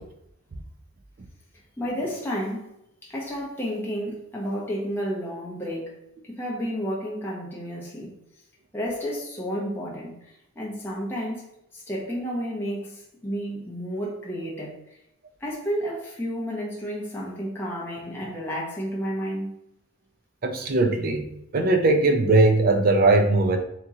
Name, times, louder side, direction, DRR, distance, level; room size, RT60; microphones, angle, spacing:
voice 1, 1.8-2.7 3.0-8.1 8.7-10.1 10.6-11.5 11.7-14.8 15.4-19.6, equal, 10° left, 0.6 m, -31 dB
voice 2, 20.4-23.6, right 2 dB, 40° right, 0.4 m, -20 dB
2.9 x 2.9 x 3.5 m
head